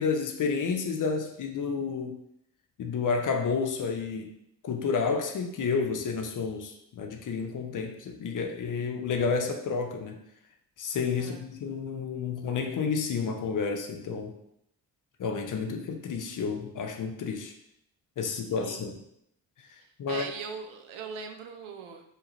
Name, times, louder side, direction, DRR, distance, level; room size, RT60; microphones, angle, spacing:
voice 1, 0.0-2.2 2.8-4.3 4.6-10.2 10.8-14.3 15.2-17.5 18.2-19.0 20.0-20.3, left 5 dB, 40° left, 4 dB, 0.5 m, -30 dB
voice 2, 18.2-18.8 19.8-22.0, right 5 dB, 75° right, 5 dB, 0.6 m, -41 dB
2.8 x 2.3 x 3.0 m, 0.76 s
hypercardioid pair, 45°, 49 cm